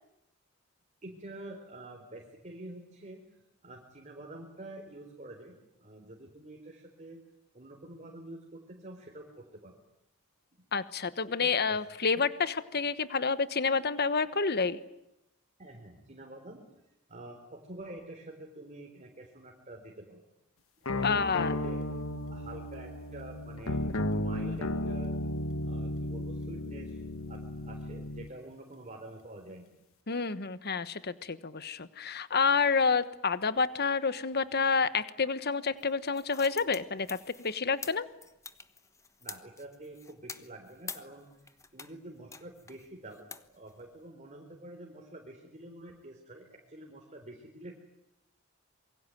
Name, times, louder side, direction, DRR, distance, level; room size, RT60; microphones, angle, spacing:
voice 1, 1.0-3.2 3.6-7.2 7.5-9.8 11.4-11.8 15.6-16.6 17.1-20.2 20.9-21.8 22.3-25.1 25.6-29.7 39.2-47.7, right 1 dB, 35° right, 2 dB, 4.2 m, -47 dB
voice 2, 10.7-14.8 21.0-21.5 30.1-38.1, left 5 dB, 50° left, 14 dB, 1.2 m, -29 dB
sound 1, 20.9-28.3, left 1 dB, 75° left, 1.6 m, -34 dB
sound 2, 35.8-41.9 42.3-44.1, left 4 dB, 15° left, 1.2 m, -47 dB
27.0 x 23.5 x 9.2 m, 0.85 s
head